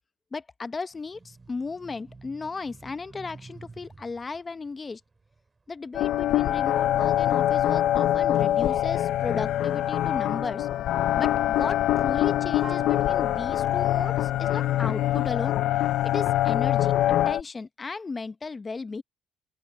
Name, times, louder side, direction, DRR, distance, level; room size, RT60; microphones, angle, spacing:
voice 1, 0.3-5.0 5.7-10.7 11.1-15.5 16.0-16.9 17.3-19.0, left 4 dB, 30° left, 0.9 m, -35 dB
sound 1, 0.9-6.5 7.0-8.9, right 3 dB, 25° right, 7.4 m, -51 dB
sound 2, 5.9-17.4, left 13 dB, 75° left, 0.5 m, -24 dB
Wind instrument woodwind instrument, 12.6-15.4, right 5 dB, 40° right, 2.5 m, -45 dB
open air
supercardioid pair, 80°, 0 cm